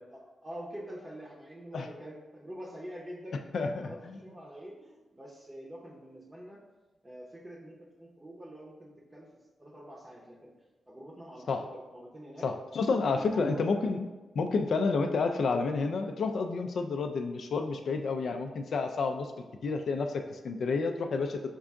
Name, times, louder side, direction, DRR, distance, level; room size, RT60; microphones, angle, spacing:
voice 1, 0.1-6.6 7.0-9.3 9.6-10.5 10.9-12.5 12.8-13.7, equal, 15° right, -5 dB, 0.7 m, -46 dB
voice 2, 12.4-14.1 14.3-19.3 19.6-21.5, left 4 dB, 65° left, 5 dB, 0.4 m, -30 dB
5.4 x 2.5 x 3.5 m, 1.2 s
cardioid pair, 90°, 0 cm